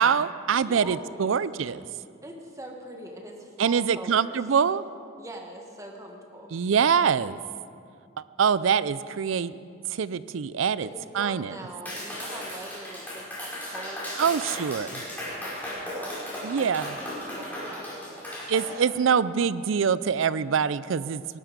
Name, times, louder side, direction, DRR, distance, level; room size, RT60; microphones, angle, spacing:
voice 1, 0.0-1.8 3.6-4.8 6.5-7.4 8.4-9.5 9.9-10.9 11.1-11.5 14.2-14.9 16.4-17.0 18.5-21.2, right 7 dB, 70° right, 17 dB, 0.4 m, -24 dB
voice 2, 0.5-1.4 2.2-4.4 5.2-6.6 10.8-18.3, right 1 dB, 15° right, 1 dB, 1.6 m, -43 dB
Clapping, 11.9-18.7, left 1 dB, 10° left, 4.9 m, -36 dB
18.0 x 12.0 x 5.1 m, 2.3 s
head